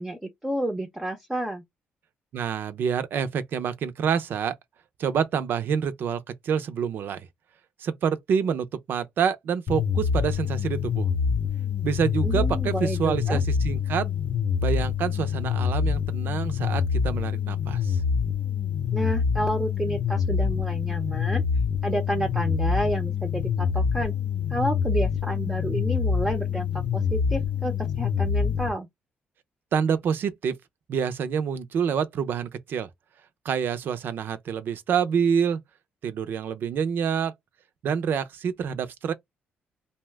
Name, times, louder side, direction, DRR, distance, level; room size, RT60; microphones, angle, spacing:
voice 1, 0.0-1.6 12.2-13.4 18.9-21.4 21.8-24.1 24.5-28.9, right 1 dB, 10° right, 0.6 m, -30 dB
voice 2, 2.3-4.5 5.0-7.3 7.8-11.1 11.8-14.1 14.6-18.0 29.7-30.5 30.9-32.9 33.4-35.6 36.0-37.3 37.8-39.1, right 7 dB, 65° right, 0.5 m, -27 dB
sound 1, 9.7-28.7, left 6 dB, 40° left, 0.7 m, -26 dB
2.7 x 2.1 x 3.3 m
cardioid pair, 105°, 4 cm